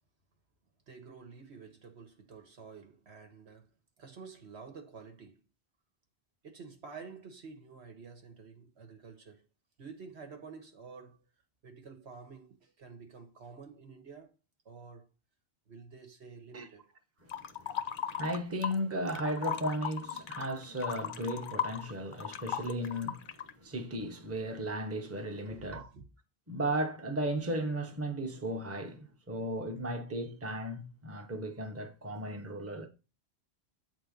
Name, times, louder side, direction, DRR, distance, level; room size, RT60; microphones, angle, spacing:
voice 1, 0.9-3.7 4.0-5.4 6.4-9.4 9.8-11.2 11.6-14.3 14.6-15.1 15.7-16.8 25.5-26.0, right 5 dB, 85° right, 1.6 m, -50 dB
voice 2, 17.2-25.9 26.5-32.9, right 1 dB, 15° right, 0.8 m, -36 dB
sound 1, 17.3-18.8 19.1-23.5, left 9 dB, 60° left, 0.7 m, -37 dB
8.0 x 3.8 x 5.1 m
omnidirectional pair, 1.1 m